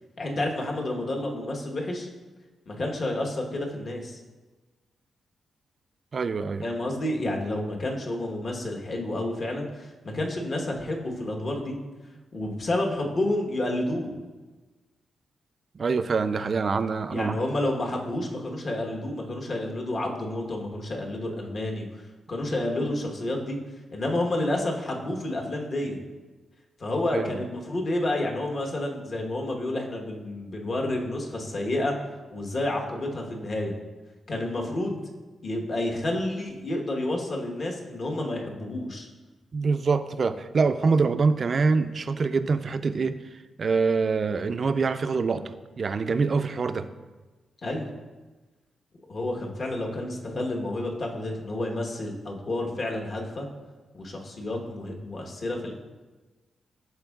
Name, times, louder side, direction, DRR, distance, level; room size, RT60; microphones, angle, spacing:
voice 1, 0.2-2.1 2.7-4.2 6.6-11.8 12.3-14.1 17.1-23.6 23.9-26.0 26.8-31.9 32.3-33.7 34.3-35.1 35.4-39.1 47.6-47.9 49.1-53.5 53.9-55.7, left 1 dB, 50° left, 0 dB, 1.2 m, -30 dB
voice 2, 6.1-6.6 15.7-17.4 27.1-27.4 39.5-43.2 43.6-46.9, right 4 dB, 50° right, 11 dB, 0.3 m, -25 dB
12.5 x 4.4 x 2.4 m, 1.2 s
cardioid pair, 90°, 0 cm